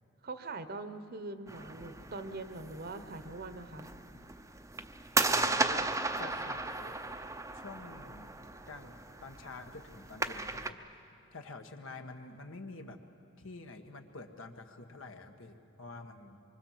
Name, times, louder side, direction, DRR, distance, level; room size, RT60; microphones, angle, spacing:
voice 1, 0.2-3.9, right 3 dB, 50° right, 10 dB, 1.1 m, -42 dB
sound 1, 1.5-10.7, right 3 dB, 15° right, 0.7 m, -36 dB
voice 2, 5.2-5.9 6.2-7.0 7.5-8.4 8.7-11.0 11.3-13.0 13.4-16.4, left 3 dB, 75° left, 5 dB, 1.6 m, -47 dB
25.5 x 24.0 x 7.5 m, 2.7 s
head